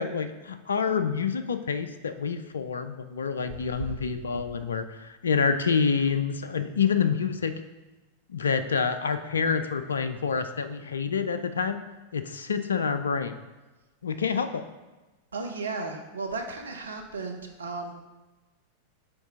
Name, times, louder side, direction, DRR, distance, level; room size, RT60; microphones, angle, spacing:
voice 1, 0.0-7.5 8.3-11.8 12.1-13.4 14.0-14.7, left 6 dB, 70° left, 10 dB, 0.4 m, -27 dB
voice 2, 15.3-17.9, right 3 dB, 70° right, 4 dB, 0.8 m, -35 dB
6.2 x 4.6 x 3.6 m, 1.2 s
figure-of-eight pair, 90°, 0 cm